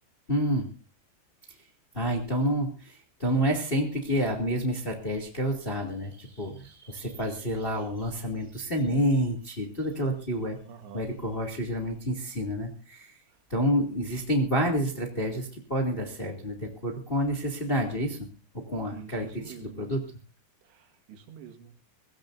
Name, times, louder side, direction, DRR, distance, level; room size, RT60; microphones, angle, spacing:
voice 1, 0.3-0.7 1.9-10.6 10.9-13.2 13.5-18.2 18.5-20.0, equal, 20° left, 3 dB, 1.8 m, -29 dB
voice 2, 10.7-11.1 13.3-13.4 18.9-19.9 20.6-21.7, right 7 dB, 80° right, 7 dB, 3.9 m, -47 dB
24.0 x 16.0 x 2.7 m, 0.35 s
omnidirectional pair, 5.0 m